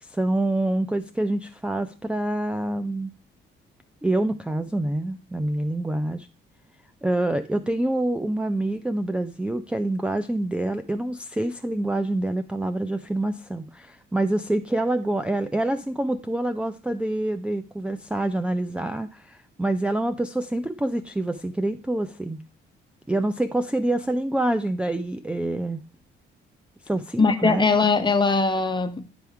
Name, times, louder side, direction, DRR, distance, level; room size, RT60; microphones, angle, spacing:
voice 1, 0.0-3.1 4.0-6.3 7.0-22.4 23.1-25.8 26.9-27.6, right 1 dB, 5° right, 0.4 m, -26 dB
voice 2, 27.2-29.0, left 4 dB, 25° left, 1.1 m, -20 dB
10.0 x 3.5 x 4.5 m
cardioid pair, 90°, 20 cm